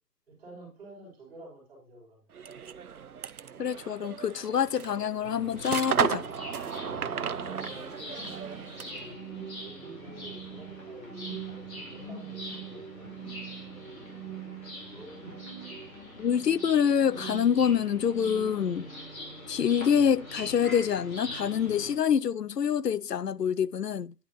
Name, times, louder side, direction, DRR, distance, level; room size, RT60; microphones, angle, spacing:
voice 1, 0.3-2.2 6.8-8.2 8.9-13.6, right 2 dB, 5° right, 6.4 m, -50 dB
sound 1, 2.3-9.1, right 7 dB, 65° right, 0.6 m, -34 dB
voice 2, 3.6-6.3 16.2-18.9 19.5-24.1, left 8 dB, 75° left, 0.6 m, -26 dB
sound 2, 5.2-21.9, left 1 dB, 55° left, 4.2 m, -44 dB
sound 3, 7.2-18.6, right 7 dB, 10° left, 3.0 m, -44 dB
10.5 x 9.9 x 3.0 m
figure-of-eight pair, 150°, 49 cm